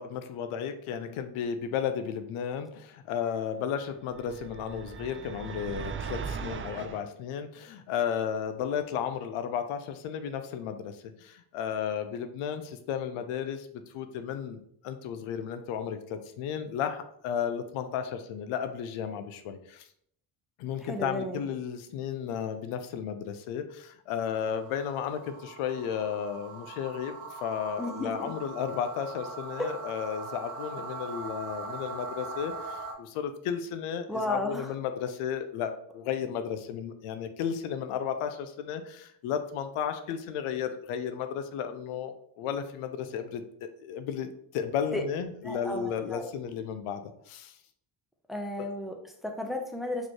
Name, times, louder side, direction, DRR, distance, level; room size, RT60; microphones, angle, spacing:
voice 1, 0.0-19.9 20.6-47.6 48.6-48.7, left 8 dB, 85° left, 8 dB, 0.6 m, -34 dB
sound 1, 4.1-7.0, right 6 dB, 30° right, 0.3 m, -38 dB
voice 2, 20.8-21.5 27.8-28.3 29.6-29.7 34.1-34.7 44.9-45.0 45.4-46.3 48.3-50.1, left 1 dB, ahead, 4 dB, 0.7 m, -34 dB
sound 2, 24.3-32.9, right 3 dB, 85° right, 0.8 m, -41 dB
3.9 x 3.1 x 3.1 m, 0.68 s
supercardioid pair, 50°, 49 cm